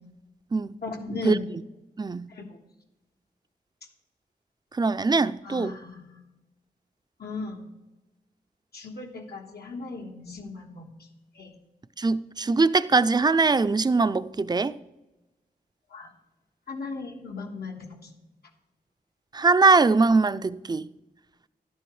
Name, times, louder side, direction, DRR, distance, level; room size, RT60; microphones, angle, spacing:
voice 1, 0.8-1.4 2.3-2.6 5.4-6.2 7.2-7.7 8.7-10.9 11.3-11.5 15.9-16.1 16.7-18.1, left 3 dB, 85° left, 1.5 m, -37 dB
voice 2, 2.0-2.3 4.8-5.7 12.0-14.8 19.3-20.9, right 3 dB, 25° right, 0.4 m, -22 dB
12.0 x 10.0 x 3.2 m
wide cardioid pair, 75°, 16 cm